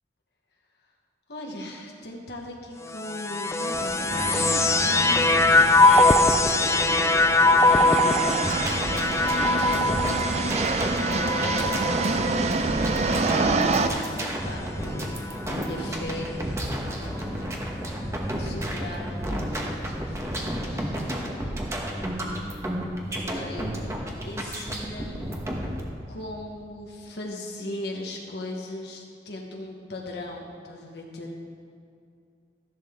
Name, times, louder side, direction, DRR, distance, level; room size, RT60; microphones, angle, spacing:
voice 1, 1.3-6.5 7.4-10.3 11.1-15.2 15.5-17.6 18.3-21.6 21.9-22.5 23.0-23.8 24.2-25.3 26.1-31.4, left 1 dB, 65° left, 0 dB, 1.2 m, -39 dB
sound 1, 2.9-14.4 15.1-15.9, left 2 dB, 15° left, 0.4 m, -22 dB
sound 2, 3.7-13.9, right 3 dB, 40° right, 0.5 m, -27 dB
sound 3, 8.4-25.8, equal, 15° right, 1.1 m, -32 dB
13.5 x 11.0 x 3.6 m, 2.4 s
head